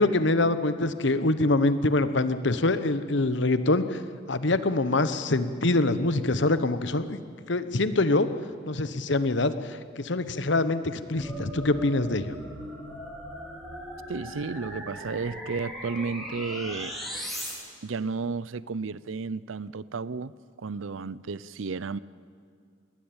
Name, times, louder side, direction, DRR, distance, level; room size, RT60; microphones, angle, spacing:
voice 1, 0.0-4.0 4.3-7.2 7.5-8.3 8.7-12.3, left 2 dB, 65° left, 1.0 m, -25 dB
sound 1, 11.2-17.5, equal, ahead, 4.1 m, -38 dB
voice 2, 14.1-17.0 17.8-22.0, right 4 dB, 85° right, 0.6 m, -33 dB
20.0 x 19.5 x 8.8 m
head